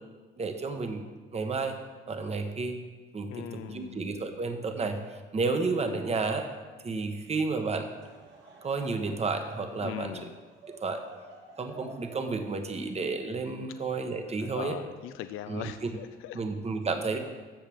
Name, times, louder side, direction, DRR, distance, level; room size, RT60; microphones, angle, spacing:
voice 1, 0.4-1.1 1.3-1.8 2.1-2.8 3.1-6.5 6.8-7.9 8.6-10.3 10.8-11.0 11.6-14.8 15.5-15.7 16.3-17.2, right 4 dB, 30° right, 6 dB, 1.0 m, -31 dB
voice 2, 3.3-4.0 9.8-10.3 14.4-16.4, left 12 dB, 80° left, 10 dB, 0.4 m, -40 dB
Laughter / Crowd, 7.8-14.2, right 3 dB, 65° right, 2.1 m, -52 dB
13.0 x 7.3 x 3.5 m, 1.4 s
cardioid pair, 85°, 21 cm